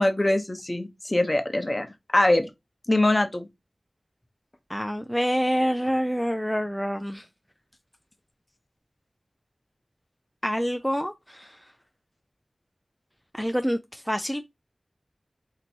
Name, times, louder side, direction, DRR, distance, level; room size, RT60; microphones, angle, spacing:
voice 1, 0.0-1.9 2.1-2.5 2.9-3.5, left 1 dB, 30° left, 0.8 m, -23 dB
voice 2, 4.7-7.2 10.4-11.5 13.3-14.5, equal, 5° left, 0.3 m, -27 dB
2.9 x 2.7 x 4.3 m
wide cardioid pair, 55°, 0 cm